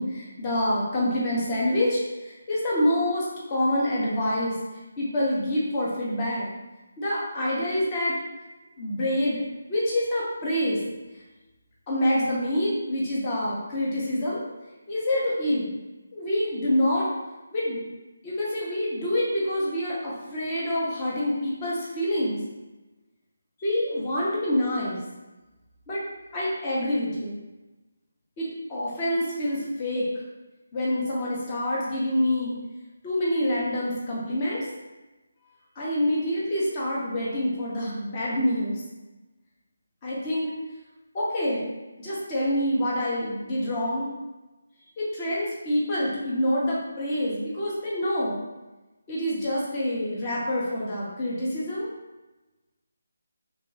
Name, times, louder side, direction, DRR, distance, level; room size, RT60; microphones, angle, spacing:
voice 1, 0.0-4.5 5.0-6.5 7.0-8.2 8.8-9.4 9.7-10.8 11.9-14.5 14.9-15.7 16.1-17.1 17.5-17.8 18.2-22.4 23.6-25.0 25.9-26.0 26.3-27.4 28.4-30.1 30.7-32.5 33.0-34.7 35.8-38.8 40.0-40.5 41.1-41.7 42.0-44.1 45.0-48.4 49.1-51.9, left 1 dB, 25° left, -6 dB, 0.9 m, -26 dB
3.0 x 2.5 x 3.9 m, 1.1 s
figure-of-eight pair, 165°, 0 cm